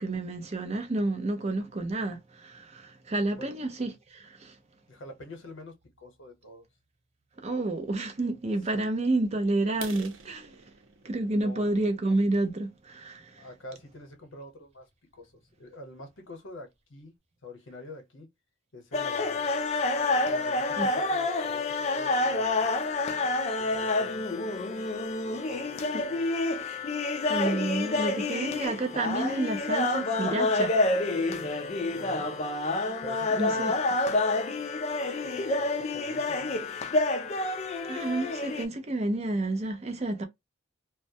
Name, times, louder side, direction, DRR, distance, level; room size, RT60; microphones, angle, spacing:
voice 1, 0.0-4.6 7.4-10.5 11.0-13.5 20.8-20.9 25.9-26.1 27.3-31.5 33.3-33.7 35.1-35.4 37.4-40.2, right 2 dB, 35° right, 0.6 m, -30 dB
voice 2, 4.9-6.7 8.7-8.9 11.4-11.7 13.4-14.8 15.2-17.1 17.4-18.3 18.7-19.5 20.1-22.8 23.6-24.3 24.5-24.8 25.2-25.9 26.1-26.3 31.9-32.4 33.0-34.0 35.2-36.6, left 1 dB, 75° left, 0.9 m, -46 dB
sound 1, 9.7-13.5 14.0-14.2 14.6-14.7 15.2-15.3 15.6-15.7 16.2-16.3 16.5-17.0, right 6 dB, 90° right, 0.6 m, -48 dB
sound 2, 18.9-38.7, left 2 dB, 35° left, 0.4 m, -28 dB
2.2 x 2.1 x 2.7 m
head